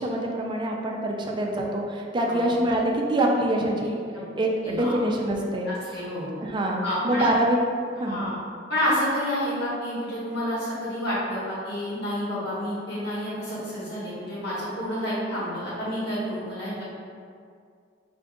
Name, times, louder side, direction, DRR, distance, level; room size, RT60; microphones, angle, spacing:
voice 1, 0.0-1.8 2.1-4.0 4.4-5.7 6.4-7.6 8.0-8.2, right 1 dB, 25° right, 0 dB, 0.4 m, -25 dB
voice 2, 4.6-5.0 5.6-6.3 6.8-7.3 8.0-8.4 8.7-16.8, equal, 65° left, -9 dB, 1.3 m, -29 dB
4.9 x 2.5 x 2.5 m, 2.2 s
head